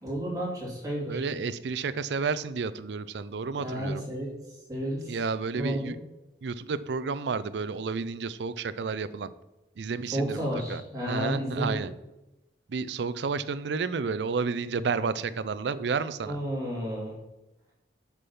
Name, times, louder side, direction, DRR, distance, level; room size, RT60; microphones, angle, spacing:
voice 1, 0.0-1.2 3.6-4.3 4.7-5.1 5.6-5.9 10.1-11.8 16.2-17.1, equal, 20° right, -4 dB, 2.7 m, -31 dB
voice 2, 1.1-4.0 5.1-6.0 6.4-9.3 9.8-11.9 12.7-16.4, right 5 dB, 75° right, 15 dB, 0.4 m, -31 dB
6.6 x 6.1 x 5.5 m, 0.97 s
head